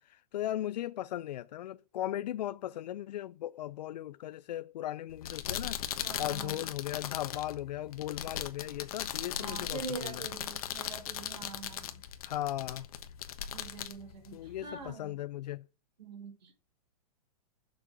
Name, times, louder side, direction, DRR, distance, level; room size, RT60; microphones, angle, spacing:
voice 1, 0.0-10.2 12.2-12.9 14.3-15.7, left 13 dB, 80° left, 0.4 m, -37 dB
sound 1, 5.1-14.9, left 10 dB, 60° left, 1.2 m, -39 dB
voice 2, 6.0-6.7 9.3-12.0 13.5-15.2 16.0-16.5, right 5 dB, 80° right, 3.5 m, -44 dB
7.2 x 6.2 x 6.3 m
hypercardioid pair, 160°, 21 cm